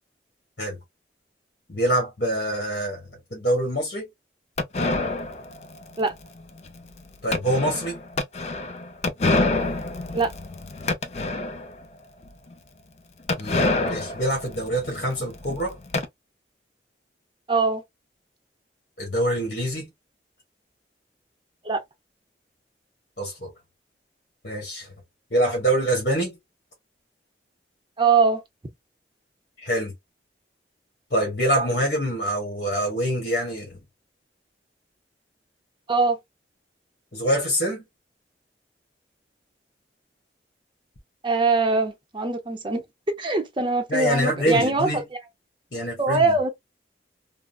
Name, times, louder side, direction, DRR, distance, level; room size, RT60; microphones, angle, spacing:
voice 1, 1.7-4.1 7.2-8.0 13.4-15.8 19.0-19.9 23.2-23.5 24.4-24.9 25.3-26.4 29.6-29.9 31.1-33.8 37.1-37.8 43.9-45.0 45.7-46.4, right 1 dB, 55° left, 1.3 m, -25 dB
sound 1, 4.6-11.8 12.2-12.3 12.5-12.6 13.3-16.1, left 2 dB, 40° left, 0.4 m, -27 dB
voice 2, 17.5-17.8 21.6-21.8 28.0-28.4 35.9-36.2 41.2-42.8 43.1-44.9 46.0-46.5, right 3 dB, 25° right, 0.6 m, -22 dB
3.7 x 2.0 x 2.2 m
head